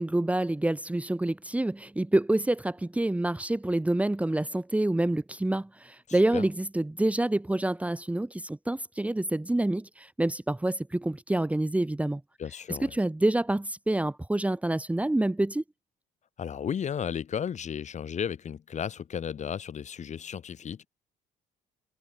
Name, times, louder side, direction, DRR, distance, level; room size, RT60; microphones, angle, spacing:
voice 1, 0.0-12.2 12.8-15.6, right 1 dB, 10° right, 1.8 m, -27 dB
voice 2, 6.1-6.4 12.4-12.9 16.4-20.9, left 8 dB, 45° left, 4.0 m, -34 dB
cardioid pair, 110°, 17 cm